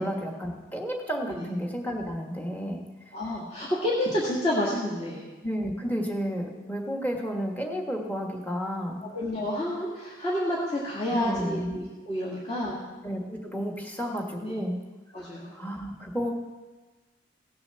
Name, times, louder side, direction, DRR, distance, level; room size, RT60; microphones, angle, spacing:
voice 1, 0.0-3.1 5.4-9.0 11.1-11.8 13.0-14.8 15.2-15.3 15.5-16.3, equal, 10° left, 2 dB, 1.3 m, -32 dB
voice 2, 3.1-5.2 9.0-12.8 14.4-14.6 15.1-15.5, left 1 dB, 30° left, -6 dB, 1.9 m, -29 dB
17.0 x 6.9 x 6.7 m, 1.2 s
head